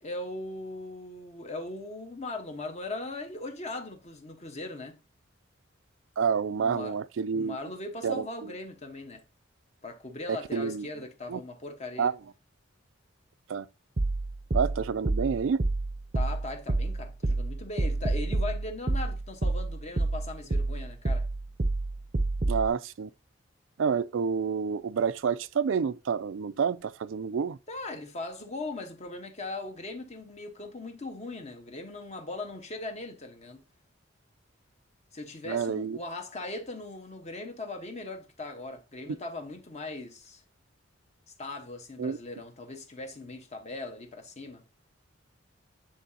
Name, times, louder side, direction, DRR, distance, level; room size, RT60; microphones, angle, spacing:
voice 1, 0.0-5.0 6.5-7.0 7.3-9.2 9.8-12.1 16.1-21.3 27.7-33.6 35.1-40.4 41.4-44.6, left 2 dB, 35° left, 1.1 m, -39 dB
voice 2, 6.2-7.6 8.0-8.5 10.3-10.9 11.3-11.4 12.0-12.2 13.5-13.7 14.5-15.6 22.5-23.1 23.8-27.6 35.5-36.0 42.0-42.2, right 6 dB, 85° right, 0.4 m, -29 dB
sound 1, 14.0-22.7, right 2 dB, 40° right, 0.6 m, -29 dB
9.2 x 3.8 x 2.7 m
head